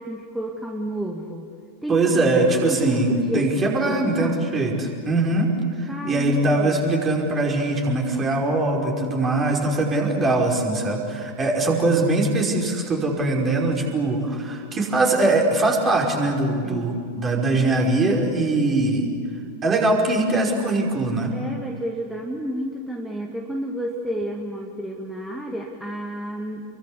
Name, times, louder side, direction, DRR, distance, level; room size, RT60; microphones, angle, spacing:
voice 1, 0.0-1.5 1.8-4.4 5.9-6.8 16.6-17.0 21.3-26.6, right 1 dB, 5° right, 0 dB, 2.2 m, -31 dB
voice 2, 1.9-5.5 5.8-19.1 19.6-21.4, right 2 dB, 20° right, 0 dB, 5.4 m, -22 dB
29.5 x 23.5 x 8.5 m, 2.1 s
figure-of-eight pair, 90°, 0 cm